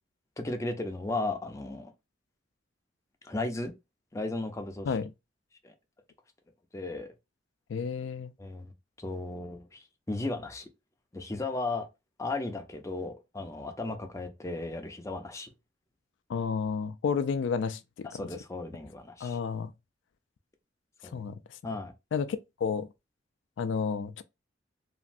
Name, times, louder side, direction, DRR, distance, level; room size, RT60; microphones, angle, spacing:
voice 1, 0.4-1.9 3.2-3.7 4.1-5.0 5.6-5.7 6.7-7.1 8.4-8.7 9.0-10.7 11.1-11.9 12.2-15.5 18.0-19.4 21.0-21.2 21.6-21.9, left 2 dB, 15° left, 0.5 m, -35 dB
voice 2, 7.7-8.3 16.3-18.1 19.2-19.7 21.1-21.4 22.1-22.9 23.6-24.2, left 6 dB, 70° left, 0.3 m, -31 dB
3.0 x 2.5 x 2.5 m
head